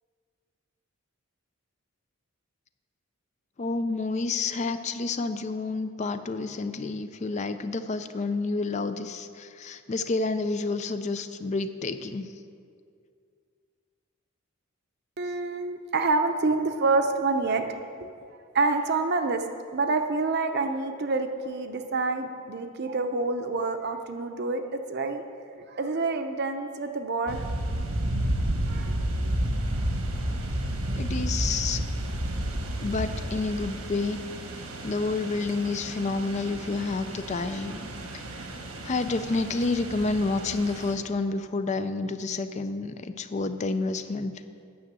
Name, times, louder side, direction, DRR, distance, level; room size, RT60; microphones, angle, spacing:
voice 1, 3.6-12.3 31.0-31.8 32.8-34.2 34.8-37.8 38.8-44.3, left 3 dB, 35° left, 10 dB, 0.4 m, -29 dB
voice 2, 15.2-18.1 18.5-24.6 24.9-25.2 25.7-27.4 28.7-29.0 29.2-29.3, right 3 dB, 50° right, 7 dB, 0.6 m, -27 dB
sound 1, 27.3-40.9, right 1 dB, 85° right, 1.2 m, -31 dB
9.4 x 6.3 x 7.5 m, 2.3 s
head